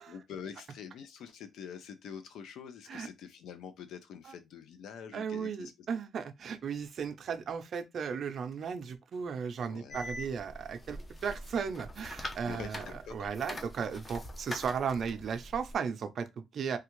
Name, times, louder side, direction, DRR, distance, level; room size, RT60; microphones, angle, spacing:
voice 1, 0.1-5.7 9.7-10.0 12.4-13.3, left 7 dB, 80° left, 0.6 m, -46 dB
voice 2, 5.1-16.8, right 6 dB, 55° right, 0.5 m, -36 dB
sound 1, 9.9-15.8, left 1 dB, 25° left, 0.7 m, -44 dB
3.3 x 2.4 x 3.0 m
cardioid pair, 90°, 0 cm